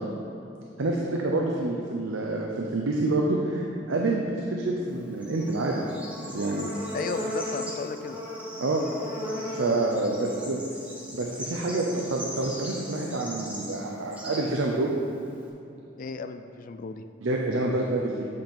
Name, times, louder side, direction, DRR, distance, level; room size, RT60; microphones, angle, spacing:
voice 1, 0.8-4.2 4.5-5.8 6.2-6.7 8.6-8.8 9.4-10.6 11.1-14.9 17.2-18.3, right 2 dB, 75° right, -1 dB, 0.6 m, -27 dB
Bird / Insect, 4.9-15.5, equal, 5° right, 1.2 m, -37 dB
voice 2, 6.9-8.2 16.0-17.0, left 4 dB, 45° left, 9 dB, 0.3 m, -35 dB
8.0 x 5.3 x 4.5 m, 2.7 s
head